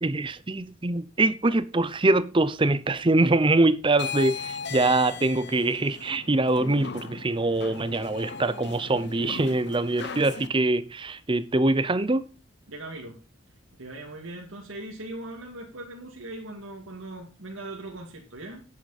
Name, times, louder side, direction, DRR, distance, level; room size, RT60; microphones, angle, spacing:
voice 1, 0.0-12.3, right 2 dB, 25° right, 0.6 m, -24 dB
sound 1, 3.9-10.5, left 5 dB, 55° left, 0.9 m, -38 dB
voice 2, 12.7-13.2 13.7-18.6, right 2 dB, 70° right, 2.4 m, -40 dB
10.0 x 8.1 x 4.2 m
head